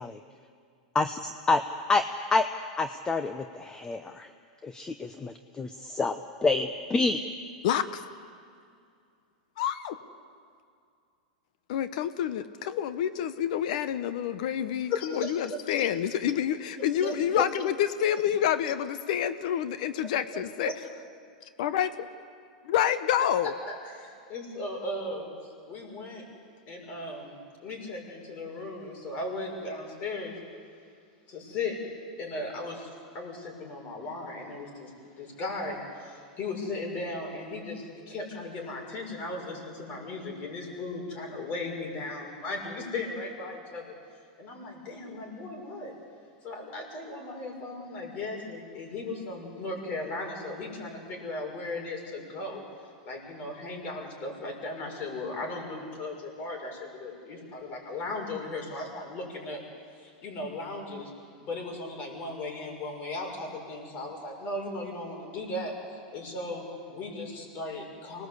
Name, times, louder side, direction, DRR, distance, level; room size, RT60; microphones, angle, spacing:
voice 1, 0.9-1.6 1.9-2.0 2.3-2.5 2.8-4.3 4.6-7.2, left 3 dB, 15° left, 9 dB, 0.8 m, -28 dB
voice 2, 7.6-8.0 9.6-10.0 11.7-20.7 21.6-21.9 22.7-23.5, left 10 dB, 65° left, 12 dB, 1.0 m, -28 dB
voice 3, 14.9-15.3 17.0-17.4 20.6-20.7 23.7-25.3 25.7-26.2 26.7-30.4 31.3-31.8 32.2-43.9 44.4-45.9 46.4-52.6 53.0-59.6 60.0-61.1 61.4-68.3, left 2 dB, 40° left, 1 dB, 6.4 m, -37 dB
25.5 x 19.5 x 8.2 m, 2.3 s
hypercardioid pair, 125°, 4 cm